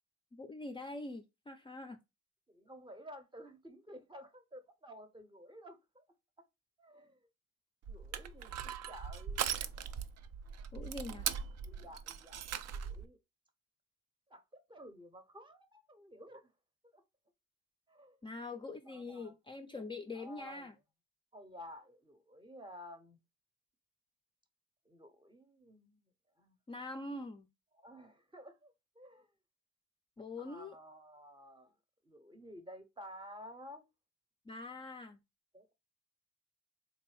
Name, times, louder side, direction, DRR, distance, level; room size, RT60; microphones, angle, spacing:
voice 1, 0.4-2.0 10.7-11.3 18.2-20.7 26.7-27.5 30.2-30.8 34.5-35.2, left 2 dB, 15° left, 0.4 m, -44 dB
voice 2, 2.5-6.0 6.8-7.2 7.9-9.6 11.1-11.2 11.6-12.4 12.7-13.2 14.3-16.5 16.9-17.0 17.9-18.2 18.9-19.3 20.1-20.7 21.3-23.2 24.9-26.0 26.4-26.6 27.8-29.3 30.4-31.7 32.0-33.9 35.5-35.7, equal, 15° right, 0.7 m, -53 dB
Crushing, 7.8-13.1, right 8 dB, 60° right, 0.4 m, -40 dB
3.8 x 2.6 x 3.1 m
cardioid pair, 90°, 30 cm